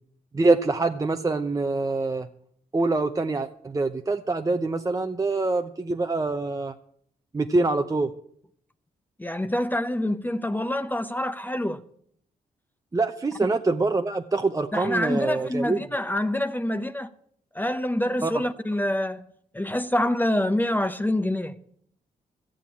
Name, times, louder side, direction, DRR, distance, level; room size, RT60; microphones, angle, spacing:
voice 1, 0.3-2.3 2.7-6.7 7.3-8.1 12.9-15.8 18.2-18.3, right 3 dB, 20° right, 0.8 m, -25 dB
voice 2, 9.2-11.8 13.4-13.5 14.7-17.1 17.5-19.2 19.5-21.6, left 1 dB, 10° left, 0.8 m, -26 dB
15.0 x 7.6 x 8.5 m
cardioid pair, 75°, 16 cm